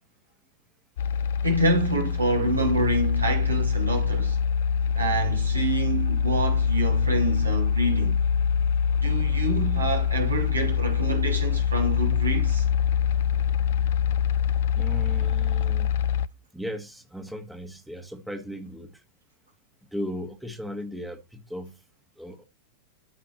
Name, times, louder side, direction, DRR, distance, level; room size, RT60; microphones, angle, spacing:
sound 1, 1.0-16.3, left 7 dB, 55° left, 0.4 m, -24 dB
voice 1, 1.4-4.4 4.9-8.2 9.0-12.7, right 2 dB, 80° right, 2.5 m, -27 dB
voice 2, 14.8-16.0 16.5-19.0 19.9-21.8 22.2-22.4, equal, ahead, 1.4 m, -36 dB
13.0 x 4.9 x 3.0 m
figure-of-eight pair, 90°, 0 cm